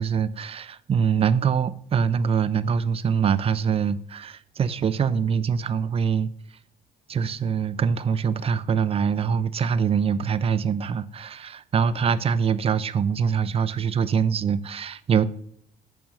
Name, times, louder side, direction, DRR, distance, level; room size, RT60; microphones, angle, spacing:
voice 1, 0.0-6.3 7.1-15.2, right 7 dB, 35° right, 0.6 m, -24 dB
8.7 x 6.1 x 6.4 m
cardioid pair, 110°, 17 cm